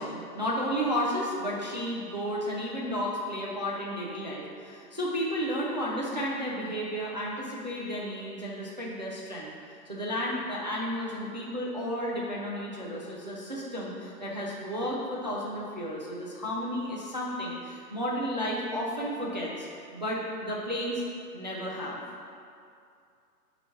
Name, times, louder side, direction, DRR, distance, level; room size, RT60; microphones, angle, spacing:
voice 1, 0.0-9.5 9.9-19.7 19.9-21.0 21.3-22.0, equal, 30° right, -5 dB, 0.4 m, -32 dB
7.8 x 3.0 x 5.6 m, 2.4 s
hypercardioid pair, 160°, 49 cm